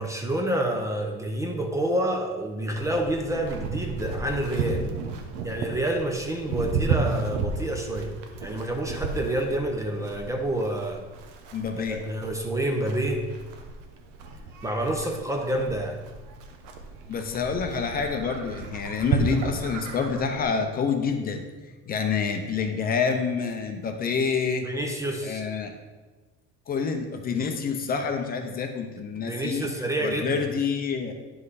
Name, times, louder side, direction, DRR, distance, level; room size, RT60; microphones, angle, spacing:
voice 1, 0.0-4.9 5.4-8.1 8.4-11.0 11.9-13.3 14.6-16.0 24.6-25.4 29.2-30.4, right 1 dB, 10° right, 3 dB, 0.7 m, -28 dB
Livestock farm animals working animals, 2.7-20.4, right 4 dB, 80° right, 1.1 m, -33 dB
voice 2, 11.5-12.0 17.1-21.4 21.9-24.7 25.2-25.7 26.7-29.7 30.0-31.1, left 5 dB, 30° left, 5 dB, 0.7 m, -27 dB
9.7 x 5.4 x 4.1 m, 1.2 s
cardioid pair, 145°, 29 cm